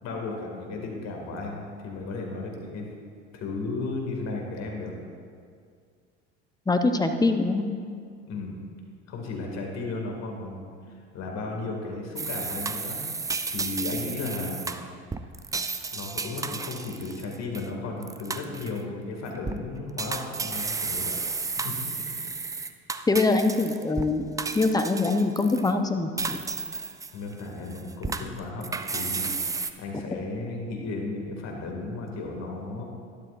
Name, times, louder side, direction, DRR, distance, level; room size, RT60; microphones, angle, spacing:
voice 1, 0.0-2.9 3.3-4.9 8.2-8.6 9.1-13.0 13.5-14.7 15.9-21.1 21.6-22.1 27.1-29.3 29.8-32.8, left 3 dB, 50° left, 0 dB, 2.3 m, -34 dB
voice 2, 6.7-7.7 23.1-24.3 24.5-26.4, left 3 dB, 10° left, 6 dB, 0.8 m, -23 dB
sound 1, 12.2-17.7 18.0-18.8 19.3-19.6 20.0-24.1 24.4-25.7 26.2-27.4 27.7-29.7, right 4 dB, 10° right, 0.4 m, -32 dB
12.0 x 11.5 x 2.6 m, 2.2 s
hypercardioid pair, 70°, 34 cm